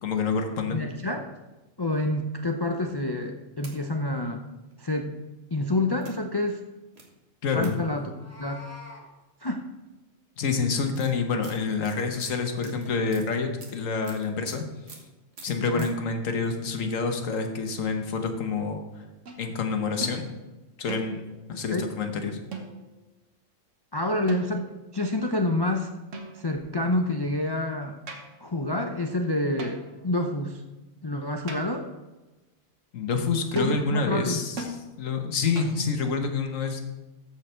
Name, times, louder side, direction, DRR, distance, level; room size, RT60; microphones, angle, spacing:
voice 1, 0.0-0.8 7.4-7.9 10.4-14.6 15.4-18.8 19.4-20.3 20.8-22.4 32.9-34.6 35.0-36.8, left 4 dB, 85° left, 5 dB, 1.4 m, -27 dB
voice 2, 0.7-1.3 1.8-4.5 4.8-5.2 5.5-6.6 7.5-8.1 8.4-8.7 9.4-9.6 12.6-12.7 15.7-15.9 21.5-21.9 23.9-24.7 24.9-25.9 26.3-28.0 28.4-30.6 31.0-31.9 33.5-34.4, left 1 dB, 40° left, 3 dB, 0.3 m, -28 dB
sound 1, 3.2-3.7 4.6-4.7 6.0-6.1 6.9-7.0 7.6-7.8 9.2-9.3 9.6-9.9 10.5-14.6 14.9-15.1 15.3-15.9, right 3 dB, 55° right, 1.7 m, -47 dB
Meow, 8.0-9.0, left 2 dB, 10° right, 1.3 m, -45 dB
sound 2, 19.3-19.5 20.0-20.2 20.9-21.4 22.5-23.0 24.3-24.8 26.1-26.7 28.1-28.4 29.6-30.0 31.5-31.9 33.6-33.8 34.6-34.8 35.6-35.9, right 3 dB, 70° right, 1.4 m, -39 dB
13.5 x 4.8 x 4.4 m, 1.1 s
omnidirectional pair, 1.3 m